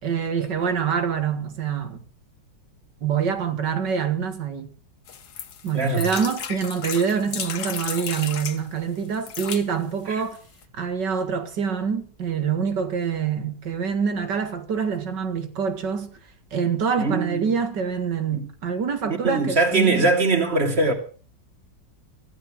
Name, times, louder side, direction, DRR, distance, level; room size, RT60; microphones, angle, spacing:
voice 1, 0.0-2.0 3.0-4.7 5.6-10.4 10.7-16.1 16.5-20.1, right 6 dB, 75° right, 2.4 m, -25 dB
sound 1, 5.1-8.6 9.1-9.7 10.3-10.4 10.6-10.7, left 7 dB, 65° left, 1.7 m, -33 dB
voice 2, 5.7-6.1 10.1-10.2 17.0-17.5 18.3-18.4 19.2-20.9, right 3 dB, 35° right, 3.0 m, -21 dB
16.0 x 12.0 x 6.3 m
omnidirectional pair, 1.9 m